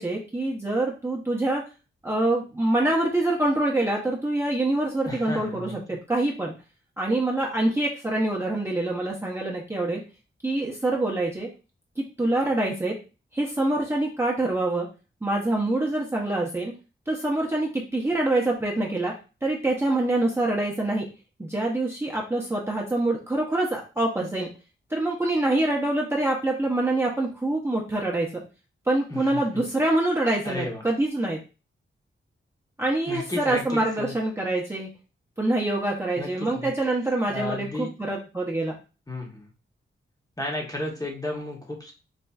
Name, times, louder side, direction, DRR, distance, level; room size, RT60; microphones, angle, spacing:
voice 1, 0.0-1.6 2.0-6.5 7.0-10.0 10.4-11.5 12.0-12.9 13.3-14.9 15.2-16.7 17.1-19.1 19.4-21.1 21.4-24.5 24.9-28.4 28.9-31.4 32.8-34.9 35.4-38.8, right 2 dB, 10° right, -3 dB, 0.6 m, -25 dB
voice 2, 5.1-5.7 29.1-29.4 30.4-30.8 33.1-34.1 36.2-36.7 37.3-37.9 39.1-39.5 40.4-41.9, left 2 dB, 15° left, 1 dB, 0.8 m, -33 dB
4.1 x 2.4 x 2.3 m, 0.32 s
wide cardioid pair, 95°, 21 cm